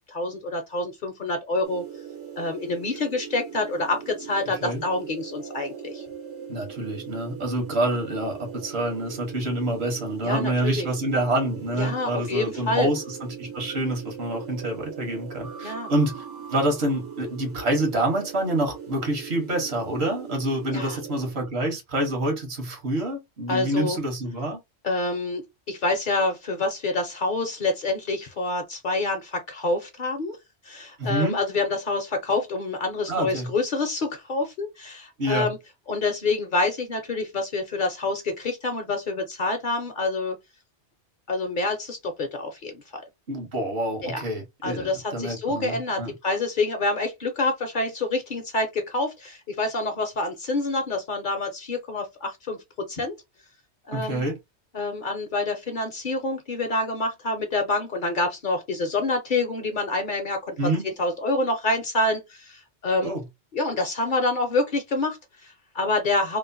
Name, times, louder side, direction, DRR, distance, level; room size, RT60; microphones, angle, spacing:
voice 1, 0.1-1.8 2.4-6.0 10.2-10.9 11.7-12.9 15.6-15.9 20.7-21.0 23.5-24.0 24.8-30.4 30.6-35.6 35.9-40.4 41.3-43.0 44.0-44.2 44.6-53.2 53.9-54.2 54.7-60.5 60.8-63.1 63.5-66.4, left 2 dB, 55° left, 0.7 m, -27 dB
sound 1, 1.6-21.3, right 7 dB, 85° right, 1.5 m, -40 dB
voice 2, 6.5-16.2 16.5-24.6 31.0-31.4 33.1-33.5 35.2-35.5 43.3-46.1 53.9-54.4 60.6-60.9 63.0-63.2, right 1 dB, 65° right, 1.3 m, -27 dB
3.0 x 2.0 x 2.5 m
omnidirectional pair, 1.2 m